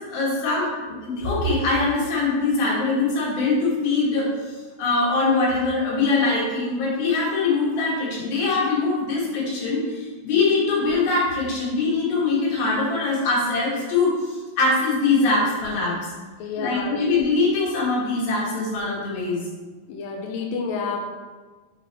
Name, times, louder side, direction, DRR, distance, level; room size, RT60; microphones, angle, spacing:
voice 1, 0.0-16.1 16.6-19.5, left 3 dB, 65° left, -6 dB, 3.5 m, -23 dB
voice 2, 16.4-17.0 19.9-21.0, left 5 dB, 80° left, 0 dB, 2.0 m, -29 dB
7.3 x 4.0 x 4.3 m, 1.3 s
omnidirectional pair, 4.8 m